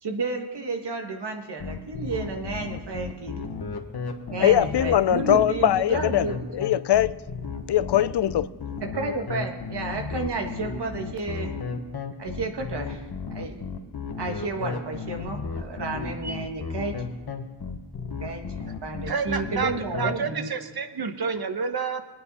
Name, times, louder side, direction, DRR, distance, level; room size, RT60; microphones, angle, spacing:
voice 1, 0.0-3.5 4.3-6.5 8.9-11.6 12.2-13.0 13.3-13.6 14.2-17.0 18.2-18.5 18.8-20.5, right 3 dB, 80° right, 1.6 m, -31 dB
sound 1, 1.6-20.1, left 5 dB, 65° left, 1.2 m, -34 dB
voice 2, 4.4-6.3 6.5-7.2 7.7-8.5, left 11 dB, 85° left, 0.5 m, -21 dB
voice 3, 19.1-22.0, right 5 dB, 65° right, 1.1 m, -29 dB
21.0 x 9.4 x 4.1 m
wide cardioid pair, 70°, 40 cm